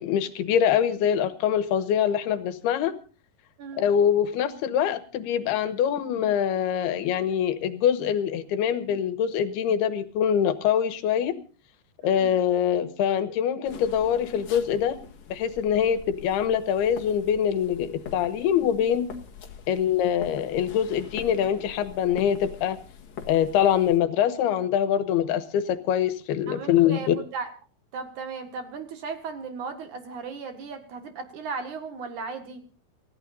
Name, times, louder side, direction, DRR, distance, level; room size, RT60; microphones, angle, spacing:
voice 1, 0.0-2.9 3.8-11.3 12.0-15.0 15.3-19.1 19.7-22.8 23.3-27.1, left 9 dB, 80° left, 11 dB, 3.1 m, -24 dB
sound 1, 13.7-24.0, left 6 dB, 55° left, 2.3 m, -44 dB
voice 2, 26.5-27.5 27.9-32.6, right 5 dB, 55° right, 7 dB, 2.8 m, -36 dB
28.5 x 14.5 x 2.6 m, 0.36 s
omnidirectional pair, 4.6 m